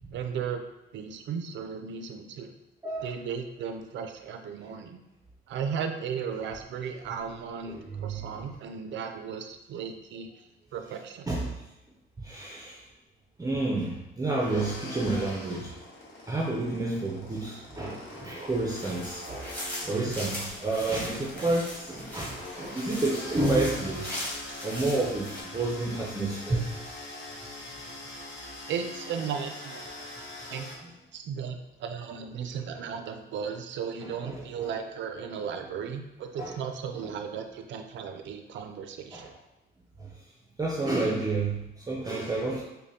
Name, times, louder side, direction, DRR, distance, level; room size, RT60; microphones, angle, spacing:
voice 1, 0.1-0.6 0.9-2.5 3.0-5.0 5.5-10.4 10.7-11.3 28.7-30.0 30.5-30.7 31.1-39.3, right 7 dB, 70° right, 6 dB, 0.5 m, -35 dB
voice 2, 7.7-8.3 11.3-11.5 12.2-12.8 13.4-15.7 16.3-19.6 19.8-24.1 24.6-26.7 34.0-34.7 36.4-36.6 37.0-37.2 39.1-39.4 40.0-40.1 40.6-42.6, right 2 dB, 20° right, -3 dB, 0.6 m, -30 dB
sound 1, 14.4-30.7, left 2 dB, 65° left, 0.9 m, -43 dB
sound 2, 18.7-25.4, left 1 dB, 10° left, 1.4 m, -39 dB
5.1 x 2.2 x 2.8 m, 0.94 s
cardioid pair, 90°, 20 cm